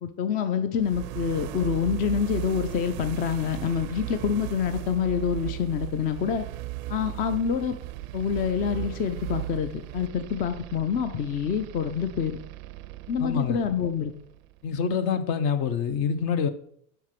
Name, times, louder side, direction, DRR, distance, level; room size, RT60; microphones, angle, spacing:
voice 1, 0.0-6.4 6.9-7.7 8.1-12.4 13.1-14.1, left 7 dB, 20° left, 0.3 m, -27 dB
sound 1, 0.8-14.7, right 16 dB, 65° right, 0.5 m, -37 dB
voice 2, 13.2-13.6 14.6-16.5, left 6 dB, 50° left, 1.0 m, -26 dB
6.7 x 4.6 x 5.8 m
hypercardioid pair, 105°, 46 cm